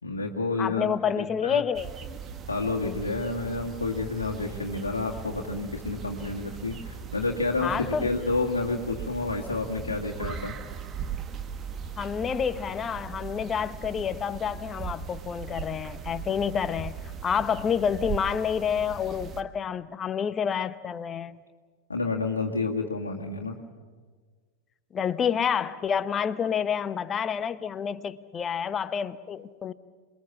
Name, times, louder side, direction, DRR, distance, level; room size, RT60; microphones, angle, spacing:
voice 1, 0.0-1.6 2.5-10.5 21.9-23.6, left 3 dB, 75° left, 0 dB, 1.9 m, -30 dB
voice 2, 0.6-2.0 7.6-8.1 12.0-16.9 17.2-21.4 24.9-29.7, left 7 dB, 25° left, 15 dB, 0.9 m, -28 dB
sound 1, 1.7-19.4, right 6 dB, 25° right, 1.4 m, -39 dB
28.0 x 21.0 x 7.3 m, 1.5 s
figure-of-eight pair, 90°, 0 cm